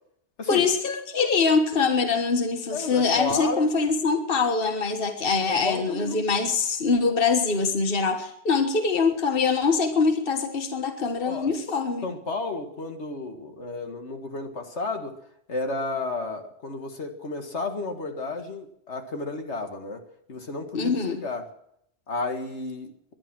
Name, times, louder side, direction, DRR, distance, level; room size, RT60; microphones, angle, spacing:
voice 1, 0.5-12.1 20.7-21.2, left 4 dB, 55° left, 6 dB, 1.6 m, -24 dB
voice 2, 2.7-3.7 5.5-6.3 11.2-11.5 12.0-15.1 15.5-20.0 20.3-21.5 22.1-22.9, left 3 dB, 80° left, 5 dB, 2.1 m, -32 dB
20.5 x 11.5 x 6.1 m, 0.72 s
omnidirectional pair, 1.1 m